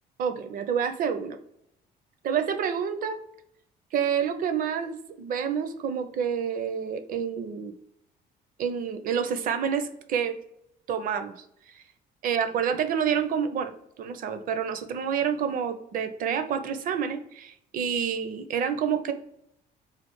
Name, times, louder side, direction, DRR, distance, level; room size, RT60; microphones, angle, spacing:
voice 1, 0.2-1.4 2.2-3.2 3.9-7.7 8.6-10.3 10.9-11.3 12.2-13.7 14.0-19.1, right 7 dB, 55° right, 8 dB, 0.5 m, -28 dB
3.2 x 2.5 x 3.0 m, 0.76 s
cardioid pair, 110°, 17 cm